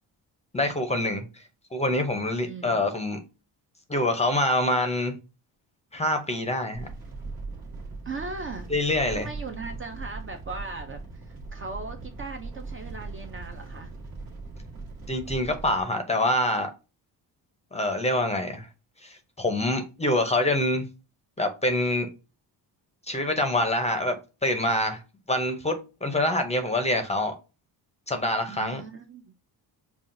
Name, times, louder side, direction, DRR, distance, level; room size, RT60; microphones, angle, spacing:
voice 1, 0.5-1.2 1.7-3.2 3.9-5.1 5.9-6.9 8.7-9.3 15.1-16.7 17.7-18.7 19.0-20.9 21.4-22.1 23.1-24.2 24.4-25.0 25.3-27.3 28.1-28.8, left 1 dB, 15° left, 0.6 m, -25 dB
voice 2, 2.4-2.8 8.0-8.7 9.1-13.9 28.5-29.3, right 3 dB, 30° right, 0.4 m, -38 dB
sound 1, 6.7-15.8, right 3 dB, 55° right, 1.2 m, -40 dB
5.4 x 2.3 x 2.5 m
cardioid pair, 120°, 43 cm